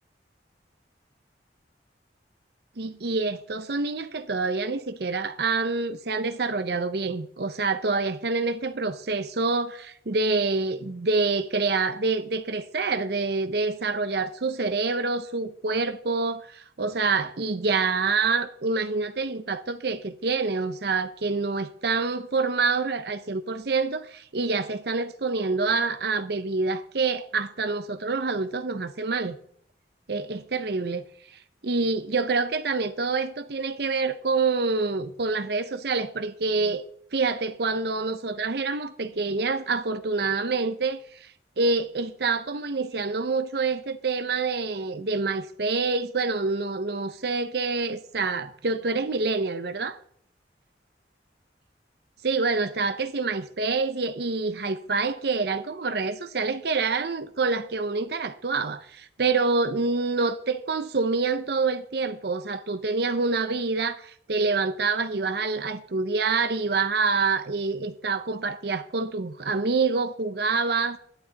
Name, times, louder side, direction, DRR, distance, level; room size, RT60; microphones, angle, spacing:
voice 1, 2.8-29.4 30.1-36.8 37.1-50.0 52.2-71.0, right 4 dB, 60° right, 0.7 m, -27 dB
14.0 x 11.5 x 4.0 m
head